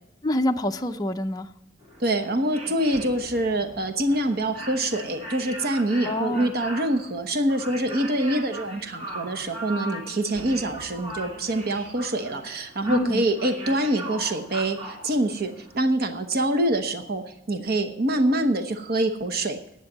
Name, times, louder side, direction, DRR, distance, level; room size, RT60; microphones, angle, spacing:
voice 1, 0.2-1.5 6.0-6.5 12.8-13.2, equal, 20° left, 4 dB, 0.5 m, -26 dB
sound 1, 1.8-15.9, right 1 dB, 30° right, 3.2 m, -39 dB
voice 2, 2.0-19.6, right 1 dB, 50° right, 8 dB, 1.0 m, -25 dB
10.5 x 8.1 x 7.3 m, 0.88 s
head